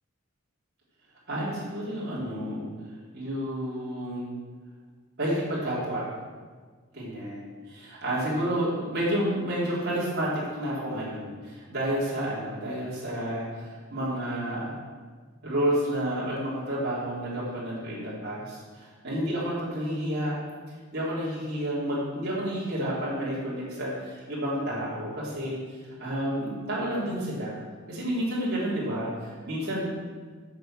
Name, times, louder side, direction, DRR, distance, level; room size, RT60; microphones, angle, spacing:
voice 1, 1.3-2.6 3.1-4.3 5.2-6.0 6.9-14.7 15.4-20.4 20.9-25.6 26.0-27.6 27.9-29.9, equal, 50° right, -9 dB, 3.4 m, -30 dB
8.2 x 6.7 x 7.6 m, 1.5 s
head